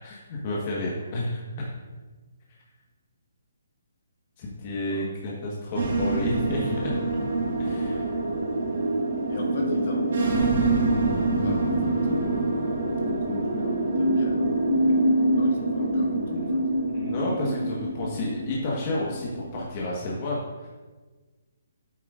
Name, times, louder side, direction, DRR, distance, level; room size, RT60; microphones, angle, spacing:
voice 1, 0.0-1.7 4.4-6.9 7.6-8.1 16.4-16.5 16.8-20.7, left 1 dB, 35° left, -4 dB, 1.5 m, -31 dB
sound 1, 5.7-19.7, right 2 dB, 65° right, 2.2 m, -25 dB
voice 2, 9.3-14.9 15.4-16.6, left 2 dB, 55° left, 0 dB, 2.0 m, -37 dB
9.1 x 9.0 x 2.6 m, 1.3 s
hypercardioid pair, 155°, 0 cm